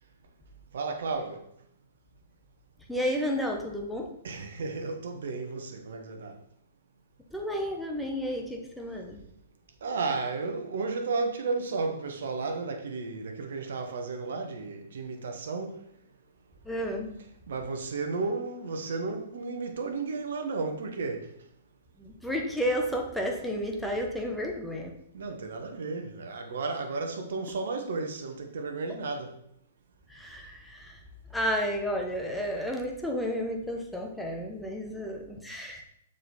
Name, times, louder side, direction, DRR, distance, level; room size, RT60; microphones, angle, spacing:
voice 1, 0.7-1.4 4.2-6.4 9.8-15.8 17.5-21.3 25.1-29.3, right 4 dB, 60° right, 1.1 m, -33 dB
voice 2, 2.9-4.1 7.3-9.2 16.6-17.2 22.0-24.9 30.1-31.0 31.3-35.8, equal, ahead, 1.1 m, -32 dB
6.7 x 5.0 x 4.2 m
figure-of-eight pair, 115°, 0 cm